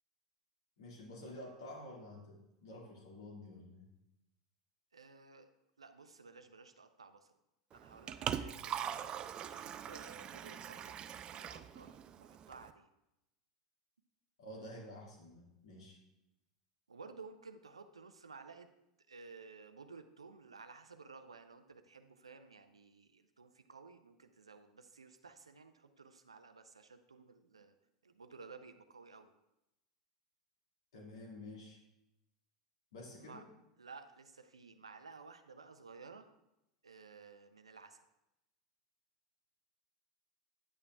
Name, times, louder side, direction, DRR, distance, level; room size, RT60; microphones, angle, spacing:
voice 1, 0.8-3.9 14.4-16.0 30.9-31.8 32.9-33.4, left 1 dB, 65° left, -2 dB, 2.2 m, -50 dB
voice 2, 4.9-5.5 5.8-7.4 7.7-11.0 11.3-12.9 16.9-18.7 19.1-27.7 28.0-29.3 33.2-33.4 33.8-36.3 36.8-38.1, right 4 dB, 80° right, 8 dB, 0.5 m, -55 dB
Liquid, 7.7-12.7, right 9 dB, 30° right, 0.4 m, -42 dB
9.7 x 8.6 x 2.4 m, 0.89 s
figure-of-eight pair, 85°, 3 cm